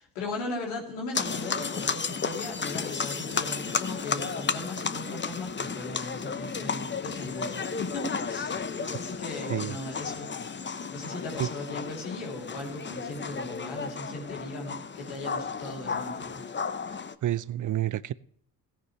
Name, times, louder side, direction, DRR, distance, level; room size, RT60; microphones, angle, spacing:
voice 1, 0.0-10.3 10.9-16.4, left 2 dB, 80° left, 3.3 m, -38 dB
sound 1, 1.1-17.2, left 5 dB, 25° left, 0.9 m, -33 dB
voice 2, 16.9-18.1, right 13 dB, 40° right, 0.6 m, -30 dB
17.5 x 10.0 x 3.2 m
hypercardioid pair, 45°, 46 cm